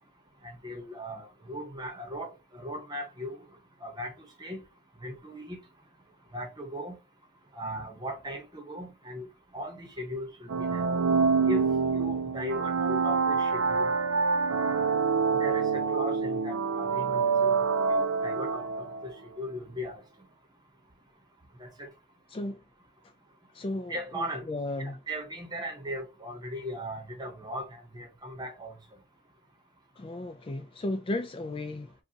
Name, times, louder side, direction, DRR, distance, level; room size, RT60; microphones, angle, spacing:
voice 1, 0.4-3.4 3.8-4.1 4.4-4.6 5.0-5.6 6.3-7.0 7.5-9.3 9.5-10.9 11.4-11.6 11.9-13.9 15.3-17.5 17.9-19.9 21.6-21.9 23.9-24.4 24.8-28.7, equal, 20° right, 1.0 m, -38 dB
sound 1, 10.5-19.1, right 5 dB, 80° right, 0.5 m, -26 dB
voice 2, 22.3-22.6 23.5-25.0 30.0-31.9, left 2 dB, 25° left, 0.3 m, -34 dB
5.3 x 2.3 x 2.8 m
head